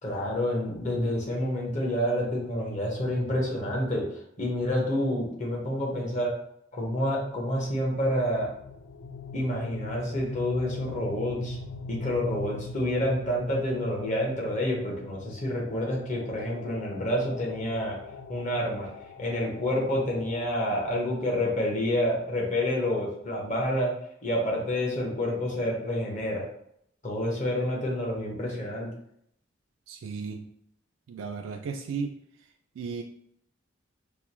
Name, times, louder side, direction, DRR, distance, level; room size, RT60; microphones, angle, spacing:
voice 1, 0.0-6.3 6.7-8.5 9.3-11.6 11.9-18.0 18.3-18.9 19.2-23.9 24.2-26.5 27.0-28.9, left 1 dB, 40° left, -2 dB, 1.0 m, -28 dB
sound 1, 7.5-22.3, left 3 dB, 70° left, 0.3 m, -42 dB
voice 2, 29.9-30.5 31.1-32.2 32.8-33.0, right 5 dB, 75° right, 3 dB, 0.3 m, -34 dB
4.7 x 2.2 x 2.9 m, 0.72 s
head